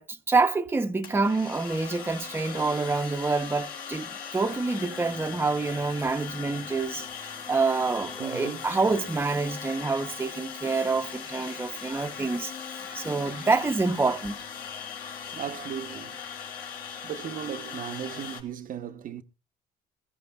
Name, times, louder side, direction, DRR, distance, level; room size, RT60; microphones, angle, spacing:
voice 1, 0.0-7.1 7.5-14.4, right 3 dB, 15° right, 0.7 m, -27 dB
sound 1, 1.0-18.4, left 7 dB, 65° left, 3.6 m, -39 dB
voice 2, 8.2-8.7 15.3-16.2 17.0-19.2, right 9 dB, 55° right, 0.8 m, -36 dB
22.5 x 15.0 x 2.3 m
cardioid pair, 110°, 17 cm